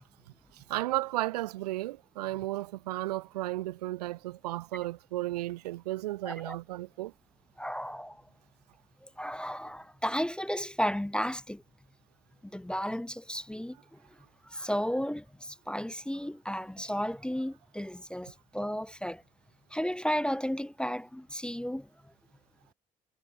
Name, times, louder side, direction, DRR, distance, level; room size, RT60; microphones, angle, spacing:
voice 1, 0.5-7.1, right 17 dB, 90° right, 0.6 m, -34 dB
voice 2, 6.2-6.6 7.6-8.2 9.0-11.6 12.4-14.0 14.4-19.2 19.7-21.9, equal, 5° left, 0.4 m, -33 dB
hypercardioid pair, 55°, 20 cm